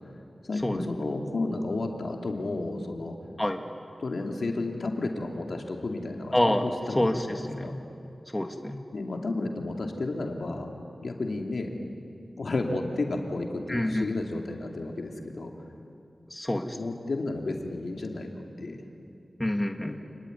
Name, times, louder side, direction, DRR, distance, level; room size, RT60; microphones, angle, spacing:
voice 1, 0.5-3.2 4.0-7.7 8.9-10.7 11.0-11.7 12.4-15.5 16.8-18.8 19.8-19.9, left 2 dB, 70° left, 2 dB, 2.9 m, -32 dB
voice 2, 6.3-6.7 7.0-7.8 8.3-8.8 13.7-14.1 16.3-16.8 19.4-20.0, left 1 dB, 15° left, 4 dB, 1.8 m, -27 dB
29.0 x 20.5 x 9.7 m, 2.5 s
wide cardioid pair, 65°, 0 cm